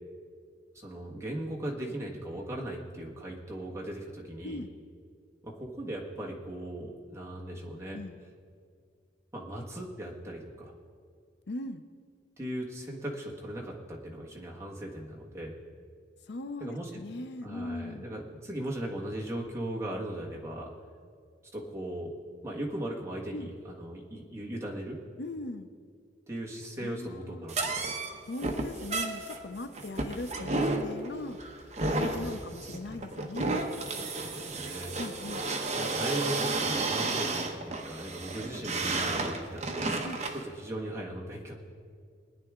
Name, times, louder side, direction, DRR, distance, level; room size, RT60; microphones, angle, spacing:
voice 1, 0.7-4.6 5.4-8.0 9.3-10.7 12.4-15.6 16.6-17.0 17.4-20.7 21.5-22.2 22.4-25.0 26.3-28.0 31.9-32.3 34.2-35.0 35.7-40.0 40.3-41.6, right 1 dB, 15° right, -2 dB, 1.5 m, -38 dB
voice 2, 4.4-4.7 7.9-8.2 11.5-11.8 16.3-18.1 23.3-23.5 25.2-25.7 26.8-27.5 28.3-31.4 31.9-33.6 35.0-35.5 40.0-40.2, left 2 dB, 65° left, 9 dB, 0.6 m, -39 dB
sound 1, 27.5-40.4, right 2 dB, 35° right, 1.0 m, -32 dB
21.5 x 9.6 x 3.7 m, 2.2 s
head